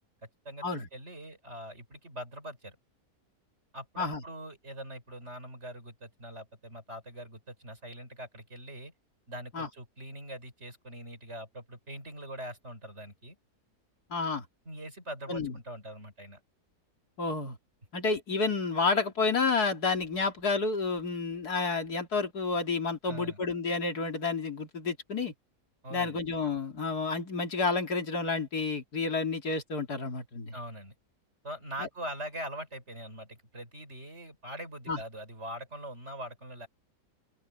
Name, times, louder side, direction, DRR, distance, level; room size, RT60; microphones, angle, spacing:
voice 1, 0.9-2.8 3.7-8.9 9.3-13.4 14.6-16.4 23.0-23.4 25.8-26.2 30.5-30.9 31.4-36.7, right 1 dB, 45° right, 6.5 m, -42 dB
voice 2, 14.1-14.4 15.3-15.5 17.2-17.6 17.9-25.3 25.9-30.5 31.8-31.9 34.9-35.0, left 4 dB, 70° left, 3.1 m, -30 dB
open air
omnidirectional pair, 1.7 m